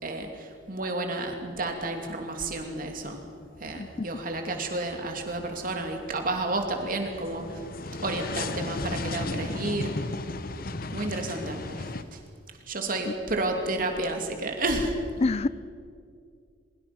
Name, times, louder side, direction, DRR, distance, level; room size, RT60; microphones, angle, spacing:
voice 1, 0.0-3.2 3.6-7.6 8.0-9.9 10.9-12.2 12.7-14.9, right 2 dB, 50° right, 4 dB, 3.0 m, -31 dB
sound 1, 1.9-2.5 2.8-12.0, left 2 dB, 55° left, 1.0 m, -36 dB
voice 2, 3.7-4.1 13.1-13.2 15.2-15.5, left 3 dB, 35° left, 17 dB, 0.5 m, -27 dB
23.5 x 22.5 x 6.2 m, 2.2 s
head